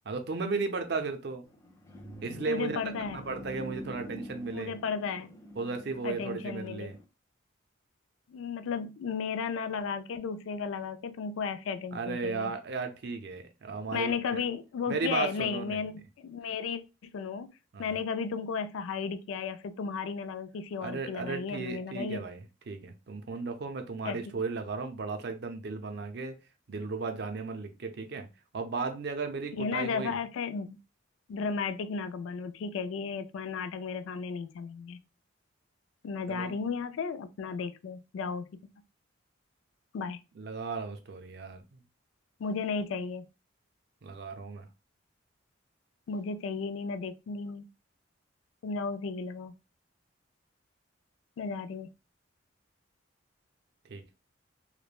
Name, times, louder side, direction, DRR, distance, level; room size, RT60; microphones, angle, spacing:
voice 1, 0.1-1.4 2.2-2.8 3.1-4.7 5.6-7.0 11.9-14.4 14.9-15.8 17.7-17.9 20.8-26.4 26.7-28.3 28.5-30.2 36.3-36.5 40.4-41.6 44.0-44.7 53.9-54.0, right 4 dB, 55° right, 0.5 m, -35 dB
sound 1, 1.4-7.0, left 1 dB, 15° left, 0.4 m, -46 dB
voice 2, 2.5-3.3 4.5-5.3 6.0-6.9 8.3-12.5 13.9-15.9 16.2-17.5 17.8-22.2 24.0-24.2 29.6-30.8 31.3-35.0 36.0-38.5 39.9-40.2 42.4-43.2 46.1-47.7 48.6-49.5 51.4-51.9, left 5 dB, 80° left, 0.3 m, -34 dB
3.1 x 2.0 x 2.3 m
head